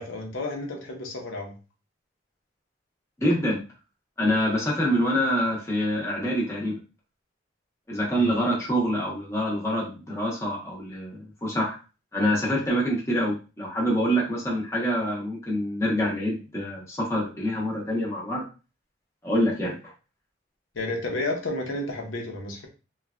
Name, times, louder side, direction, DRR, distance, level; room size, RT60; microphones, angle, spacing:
voice 1, 0.0-1.6 8.1-8.4 20.7-22.7, left 2 dB, 90° left, 1 dB, 0.7 m, -32 dB
voice 2, 3.2-3.6 4.2-6.7 7.9-11.8 12.1-18.4 19.2-19.7, equal, 15° left, -4 dB, 0.8 m, -26 dB
3.2 x 2.3 x 2.3 m, 0.32 s
head